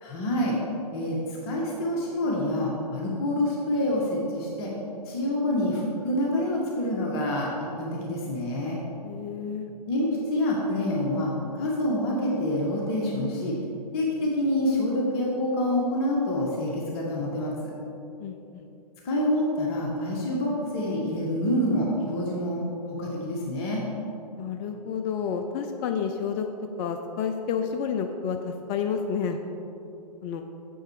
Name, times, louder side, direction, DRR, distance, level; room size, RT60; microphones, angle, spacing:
voice 1, 0.0-0.6 0.9-4.7 5.0-8.8 9.9-13.6 13.9-17.7 19.0-23.8, left 1 dB, 40° left, -3 dB, 1.7 m, -27 dB
voice 2, 9.0-9.7 18.2-18.6 24.4-26.5 26.8-29.4 30.2-30.4, left 7 dB, 25° left, 5 dB, 0.4 m, -30 dB
8.7 x 7.6 x 4.8 m, 2.8 s
figure-of-eight pair, 125°, 21 cm